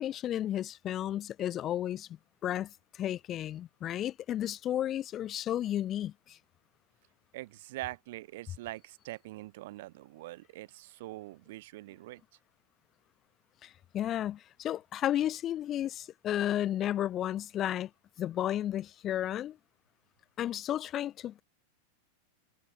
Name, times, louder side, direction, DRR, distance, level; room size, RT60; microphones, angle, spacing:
voice 1, 0.0-2.1 2.4-6.4 13.6-17.9 18.2-19.6 20.4-21.4, left 11 dB, 30° left, 0.4 m, -33 dB
voice 2, 7.3-12.2, right 18 dB, 50° right, 0.5 m, -43 dB
figure-of-eight pair, 90°, 0 cm